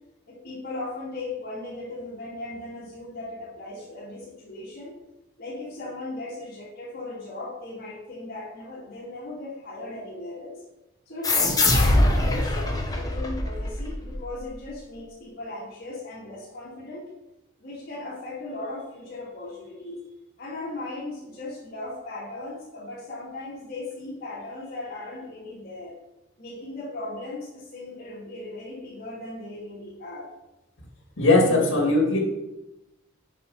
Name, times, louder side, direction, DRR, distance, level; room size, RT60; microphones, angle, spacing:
voice 1, 0.3-4.9 5.4-10.6 11.1-17.1 17.6-20.0 20.4-26.0 26.4-30.3, left 2 dB, 50° left, -8 dB, 2.5 m, -37 dB
sound 1, 11.2-14.4, left 2 dB, 20° left, 1.0 m, -23 dB
voice 2, 31.2-32.2, left 2 dB, 70° left, 0 dB, 2.2 m, -19 dB
7.4 x 5.4 x 5.5 m, 0.95 s
head